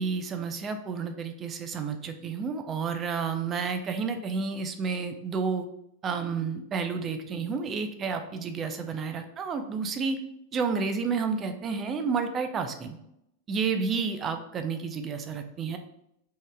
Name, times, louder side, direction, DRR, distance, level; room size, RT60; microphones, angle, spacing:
voice 1, 0.0-5.7 6.0-10.2 10.5-13.0 13.5-15.8, right 5 dB, 25° right, 7 dB, 0.4 m, -30 dB
3.7 x 2.0 x 3.3 m, 0.78 s
figure-of-eight pair, 90°, 0 cm